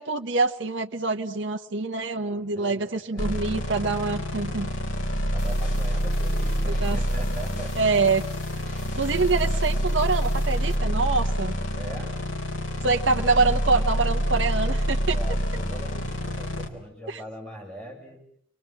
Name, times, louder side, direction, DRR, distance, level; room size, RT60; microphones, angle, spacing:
voice 1, 0.0-4.7 6.7-7.0 7.7-8.2 9.0-11.5 12.8-15.2 17.1-17.2, right 4 dB, 60° right, 4 dB, 1.0 m, -25 dB
voice 2, 2.5-3.4 5.3-7.7 11.7-12.1 15.1-18.2, right 1 dB, 5° left, -1 dB, 7.8 m, -41 dB
sound 1, 3.2-16.7, equal, 75° left, 3.5 m, -27 dB
sound 2, 5.4-10.8, left 3 dB, 50° left, 7.2 m, -48 dB
29.0 x 22.0 x 7.7 m, 0.69 s
head